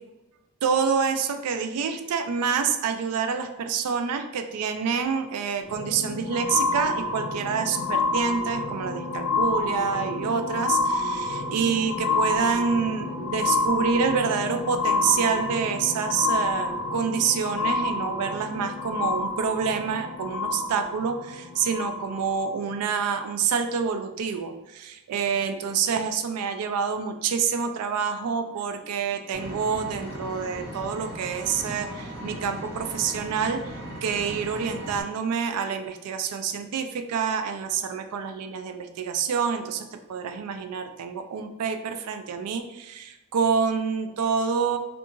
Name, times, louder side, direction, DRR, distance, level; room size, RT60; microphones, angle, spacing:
voice 1, 0.6-44.8, right 6 dB, 85° right, 7 dB, 0.3 m, -27 dB
sound 1, 5.6-22.5 23.2-23.3, left 3 dB, 60° left, 0.4 m, -28 dB
Vehicle, 29.3-35.0, equal, 55° right, 0.9 m, -38 dB
2.8 x 2.4 x 2.5 m, 1.0 s
head